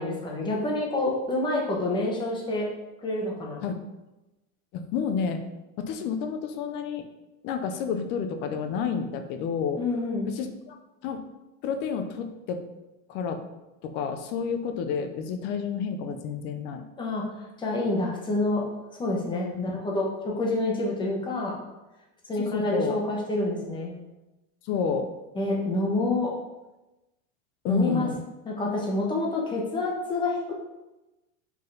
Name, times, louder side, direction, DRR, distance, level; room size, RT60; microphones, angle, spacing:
voice 1, 0.0-2.7 3.0-3.6 9.8-10.3 17.0-17.2 17.6-18.6 19.0-21.5 22.3-23.9 25.3-26.3 27.7-28.1 28.4-30.5, left 2 dB, 10° left, -2 dB, 1.0 m, -27 dB
voice 2, 4.7-5.4 5.8-7.1 7.4-9.8 10.3-10.8 11.0-11.2 11.6-12.6 13.1-13.4 13.8-16.8 19.5-19.7 22.4-23.0 24.7-25.1 27.6-28.2, left 6 dB, 30° left, 7 dB, 0.4 m, -30 dB
5.5 x 3.8 x 5.3 m, 1.0 s
supercardioid pair, 165°, 39 cm